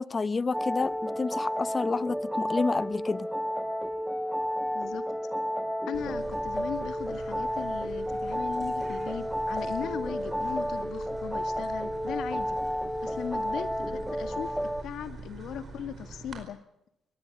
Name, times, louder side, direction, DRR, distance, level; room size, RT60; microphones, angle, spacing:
voice 1, 0.0-3.3, left 4 dB, 30° left, 0.7 m, -29 dB
sound 1, 0.5-14.8, equal, ahead, 1.0 m, -32 dB
voice 2, 5.9-12.6 13.0-14.5 14.8-16.6, left 9 dB, 75° left, 1.9 m, -38 dB
sound 2, 5.9-16.4, right 4 dB, 45° right, 4.8 m, -44 dB
23.5 x 19.0 x 7.4 m
cardioid pair, 90°, 0 cm